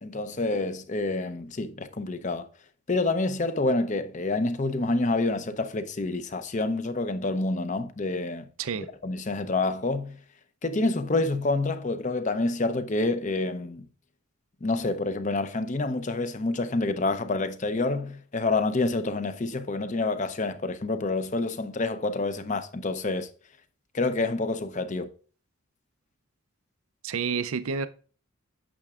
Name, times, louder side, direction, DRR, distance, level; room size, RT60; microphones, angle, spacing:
voice 1, 0.0-2.5 2.9-8.5 9.0-10.2 10.6-13.9 14.6-23.3 23.9-25.1, left 2 dB, 35° left, 0.6 m, -28 dB
voice 2, 27.0-27.9, right 6 dB, 75° right, 0.5 m, -29 dB
8.8 x 6.7 x 2.4 m
head